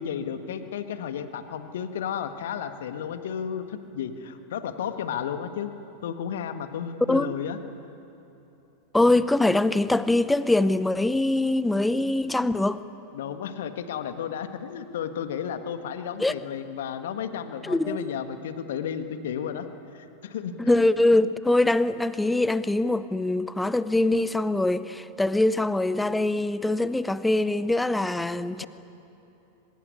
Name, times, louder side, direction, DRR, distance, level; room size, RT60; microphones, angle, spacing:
voice 1, 0.0-5.7 6.0-7.6 13.1-20.9, left 8 dB, 60° left, 9 dB, 1.7 m, -33 dB
voice 2, 8.9-12.8 16.2-16.4 17.6-18.1 20.6-28.7, left 2 dB, 5° left, 15 dB, 0.8 m, -23 dB
24.0 x 20.5 x 9.6 m, 2.9 s
figure-of-eight pair, 90°, 0 cm